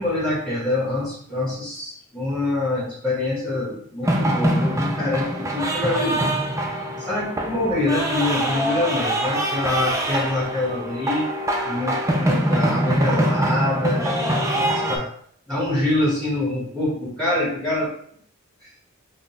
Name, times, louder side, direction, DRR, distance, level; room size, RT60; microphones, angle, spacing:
voice 1, 0.0-6.3 7.1-11.3 11.6-15.1 15.5-17.9 18.6-18.7, left 2 dB, 5° left, -6 dB, 0.9 m, -25 dB
sound 1, 4.0-15.0, right 1 dB, 15° right, 0.4 m, -24 dB
5.8 x 2.1 x 2.7 m, 0.63 s
head